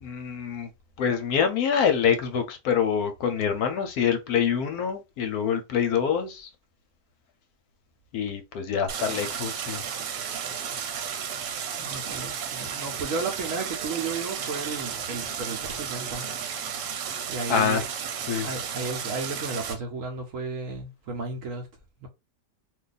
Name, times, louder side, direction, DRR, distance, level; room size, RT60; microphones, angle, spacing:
voice 1, 0.0-0.7 1.0-6.5 8.1-9.8 17.5-17.8 18.3-18.5, left 7 dB, 70° left, 1.0 m, -25 dB
Stream, 8.9-19.8, right 7 dB, 85° right, 1.3 m, -33 dB
voice 2, 11.8-16.2 17.3-17.8 18.4-21.7 22.0-22.1, right 3 dB, 65° right, 0.9 m, -33 dB
2.6 x 2.3 x 3.9 m
omnidirectional pair, 1.8 m